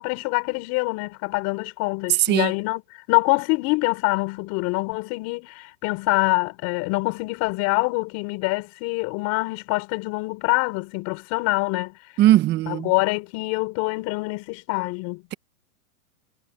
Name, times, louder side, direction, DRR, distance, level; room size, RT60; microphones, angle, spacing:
voice 1, 0.0-12.0 12.7-15.2, left 27 dB, 35° left, 5.7 m, -25 dB
voice 2, 12.2-12.9, right 14 dB, 25° right, 1.4 m, -18 dB
hypercardioid pair, 145°, 43 cm